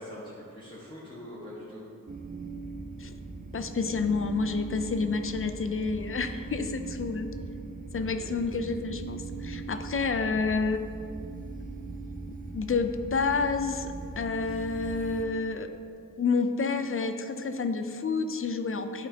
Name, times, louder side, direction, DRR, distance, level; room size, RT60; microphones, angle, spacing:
voice 1, 0.0-1.8 8.0-8.3, left 1 dB, 15° left, -9 dB, 1.1 m, -43 dB
sound 1, 2.1-15.2, right 3 dB, 25° right, 0.4 m, -40 dB
voice 2, 3.5-7.3 7.9-10.8 12.5-15.7 16.2-19.1, left 4 dB, 40° left, 8 dB, 0.4 m, -29 dB
8.9 x 4.2 x 2.8 m, 2.4 s
wide cardioid pair, 80°, 34 cm